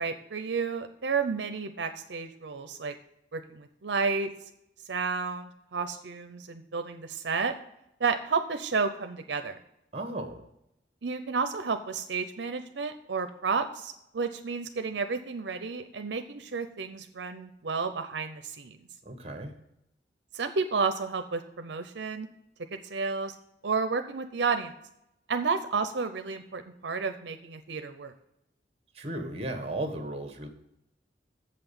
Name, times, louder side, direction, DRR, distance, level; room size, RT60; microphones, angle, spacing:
voice 1, 0.0-2.9 3.3-4.3 4.9-7.5 8.0-9.6 11.0-18.8 20.3-22.3 22.7-23.3 23.6-24.7 25.3-28.1, right 5 dB, 80° right, 8 dB, 0.6 m, -31 dB
voice 2, 9.9-10.4 19.0-19.5 28.9-30.5, right 1 dB, 35° right, 6 dB, 1.3 m, -35 dB
7.7 x 5.9 x 6.9 m, 0.82 s
head